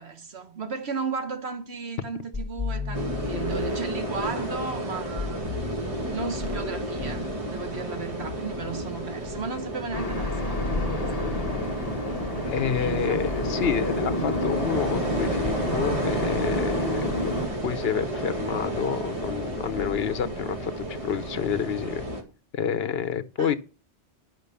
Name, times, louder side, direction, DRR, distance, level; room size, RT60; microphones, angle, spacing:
voice 1, 0.0-5.6 6.1-11.6 12.7-13.2 23.4-23.6, right 5 dB, 70° right, 1.4 m, -35 dB
sound 1, 2.3-4.5 5.2-6.7 7.0-7.3, left 4 dB, 15° right, 1.6 m, -34 dB
sound 2, 2.9-22.2, right 1 dB, 30° right, 2.0 m, -32 dB
sound 3, 9.9-17.5, left 1 dB, 35° left, 1.4 m, -30 dB
voice 2, 12.5-17.3 17.6-22.0 22.5-23.6, left 7 dB, 65° left, 1.1 m, -29 dB
10.5 x 5.8 x 6.8 m
omnidirectional pair, 1.1 m